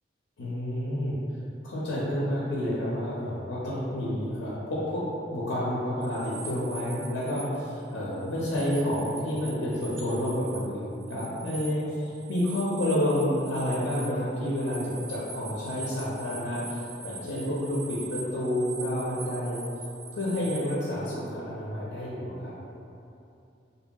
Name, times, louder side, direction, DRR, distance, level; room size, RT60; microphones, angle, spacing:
voice 1, 0.4-1.2 1.6-5.0 5.3-19.6 20.1-22.5, equal, 80° left, -8 dB, 0.5 m, -29 dB
sound 1, 6.0-7.5 7.8-10.6 10.9-20.8, right 3 dB, 90° right, 0.4 m, -43 dB
2.7 x 2.7 x 2.2 m, 2.7 s
head